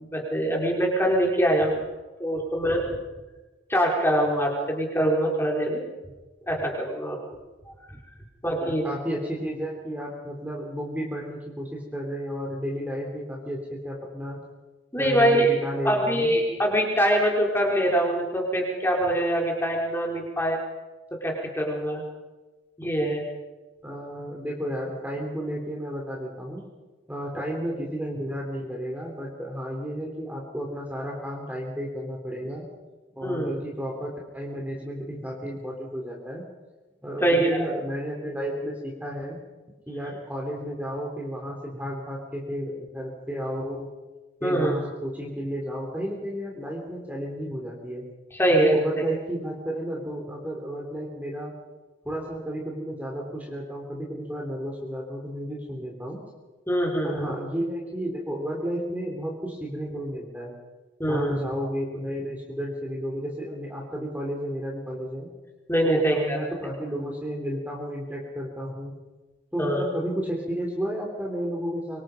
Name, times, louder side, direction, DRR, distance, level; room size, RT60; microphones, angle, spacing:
voice 1, 0.0-1.8 2.2-2.9 3.7-5.8 6.5-7.2 8.4-8.8 14.9-15.5 15.8-20.6 21.2-22.0 22.8-23.2 27.3-27.4 33.2-33.5 37.2-37.6 44.4-44.7 48.3-48.8 56.7-57.3 61.0-61.4 65.7-66.4 69.6-69.9, right 1 dB, 10° left, -1 dB, 4.2 m, -23 dB
voice 2, 8.6-14.4 15.0-16.3 23.8-26.6 27.1-32.6 33.1-36.4 37.0-39.4 39.9-43.9 44.4-48.0 48.5-51.5 52.0-56.2 57.0-60.5 61.0-65.3 65.8-68.9 69.5-72.0, equal, 10° right, -1 dB, 3.4 m, -32 dB
25.0 x 24.5 x 5.2 m, 1.2 s
head